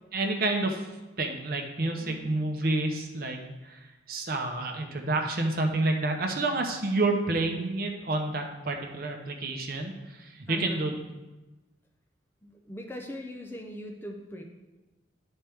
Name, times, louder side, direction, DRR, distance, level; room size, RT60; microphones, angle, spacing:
voice 1, 0.1-0.9 1.2-10.9, right 2 dB, 50° right, 3 dB, 0.8 m, -29 dB
voice 2, 2.0-2.4 10.5-10.9 12.4-14.4, left 1 dB, 10° left, 2 dB, 0.5 m, -41 dB
10.0 x 4.4 x 3.5 m, 1.1 s
head